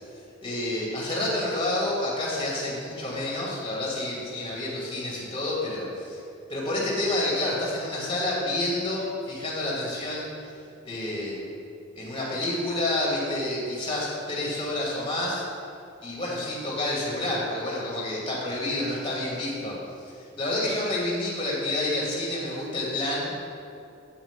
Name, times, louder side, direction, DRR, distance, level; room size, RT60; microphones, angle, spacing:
voice 1, 0.4-6.2 6.5-10.3 10.8-11.3 11.9-15.4 16.0-19.7 20.1-23.3, left 1 dB, 25° left, -5 dB, 2.3 m, -29 dB
7.1 x 6.0 x 7.3 m, 2.5 s
head